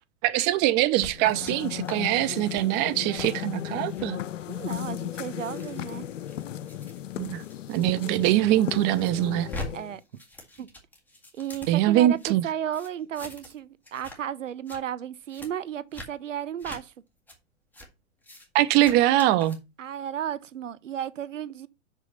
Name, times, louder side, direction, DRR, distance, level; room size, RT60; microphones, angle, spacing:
voice 1, 0.2-4.2 7.2-7.4 7.7-9.5 11.7-12.4 18.5-19.6, right 14 dB, 30° right, 0.6 m, -23 dB
sound 1, 0.9-1.5 1.8-2.0 2.3-2.6 3.1-3.3 3.9-4.1 4.7-8.3 8.7-9.7 10.0-12.3 12.7-13.6 13.8-14.2 14.5-14.8 15.3-15.5 15.9-16.1 16.6-16.8 17.3-17.4 17.7-17.9 18.2-18.5 18.8-19.6, left 1 dB, 5° left, 2.0 m, -43 dB
sound 2, 1.1-10.0, left 12 dB, 80° left, 0.7 m, -35 dB
voice 2, 4.5-6.0 9.7-10.0 10.6-10.7 11.3-16.9 19.8-21.7, right 10 dB, 85° right, 0.8 m, -34 dB
6.2 x 5.4 x 5.5 m
hypercardioid pair, 120°, 37 cm